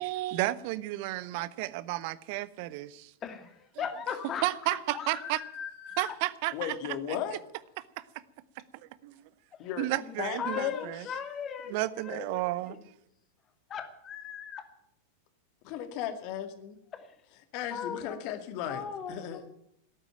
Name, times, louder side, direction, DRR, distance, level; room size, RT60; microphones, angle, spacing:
voice 1, 0.0-3.1 4.4-5.4 6.0-6.7 7.1-7.2 8.0-8.1 9.0-9.2 9.8-11.0 11.7-12.8, right 17 dB, 45° right, 0.8 m, -32 dB
voice 2, 3.2-6.2 9.9-11.8 12.0-12.8 13.7-14.6 16.9-17.1 17.7-18.2 18.7-19.5, left 7 dB, 30° left, 2.3 m, -39 dB
voice 3, 6.5-7.4 9.6-9.9 10.2-11.2 15.6-16.8 17.5-19.4, left 10 dB, 45° left, 2.1 m, -36 dB
17.5 x 9.1 x 9.0 m
figure-of-eight pair, 90°, 0 cm